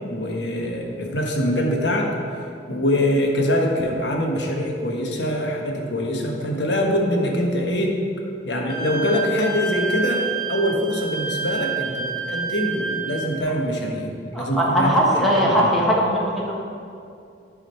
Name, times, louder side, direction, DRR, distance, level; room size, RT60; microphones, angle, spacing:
voice 1, 0.0-2.1 2.7-8.0 8.4-14.9 15.5-15.7, equal, 85° left, 0 dB, 1.1 m, -24 dB
Wind instrument woodwind instrument, 8.7-13.4, right 5 dB, 50° right, 1.7 m, -28 dB
voice 2, 14.3-16.5, equal, ahead, -5 dB, 1.4 m, -19 dB
10.5 x 3.8 x 5.5 m, 2.5 s
head